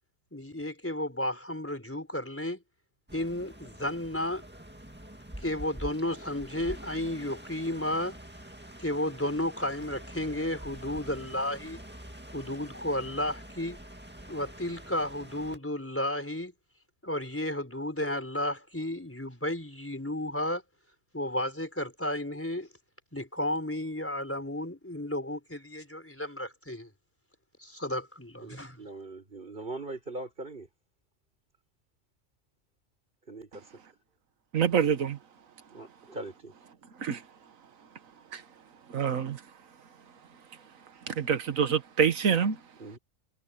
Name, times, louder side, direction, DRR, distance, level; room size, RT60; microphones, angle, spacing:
voice 1, 0.3-2.6 3.1-4.4 5.4-8.2 8.8-11.8 12.3-13.8 14.3-16.5 17.0-20.6 21.1-22.7 23.1-26.9 27.6-28.8, left 1 dB, 10° left, 4.4 m, -33 dB
sound 1, 3.1-15.6, right 1 dB, 10° right, 1.9 m, -46 dB
voice 2, 28.4-30.7 33.3-33.6 35.7-36.5 42.8-43.0, right 2 dB, 40° right, 5.6 m, -41 dB
voice 3, 34.5-35.2 37.0-37.2 38.3-38.4 38.9-39.4 41.1-42.6, right 7 dB, 85° right, 1.6 m, -26 dB
omnidirectional pair, 1.4 m